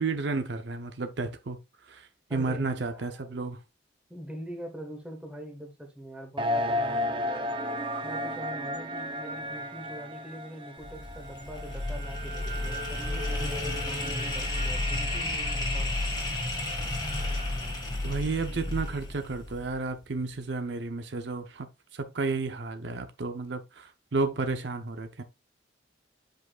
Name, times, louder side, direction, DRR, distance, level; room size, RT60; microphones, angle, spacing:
voice 1, 0.0-1.6 1.8-3.6 18.0-25.2, right 3 dB, 65° right, 0.6 m, -32 dB
voice 2, 2.3-3.5 4.1-7.5 8.0-15.9, right 1 dB, 5° right, 1.4 m, -43 dB
sound 1, 6.4-17.8, left 1 dB, 25° right, 0.6 m, -35 dB
sound 2, 10.8-19.9, left 2 dB, 20° left, 1.7 m, -32 dB
8.3 x 5.1 x 2.3 m
head